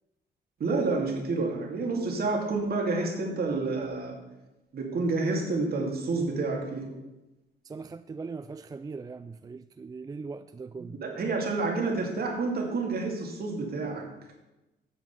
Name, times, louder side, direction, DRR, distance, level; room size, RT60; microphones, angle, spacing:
voice 1, 0.6-4.2 4.7-6.9 10.8-14.1, right 3 dB, 50° right, 1 dB, 2.6 m, -29 dB
voice 2, 7.6-11.0, right 4 dB, 20° right, 11 dB, 0.3 m, -40 dB
8.2 x 6.9 x 6.9 m, 0.99 s
cardioid pair, 90°, 20 cm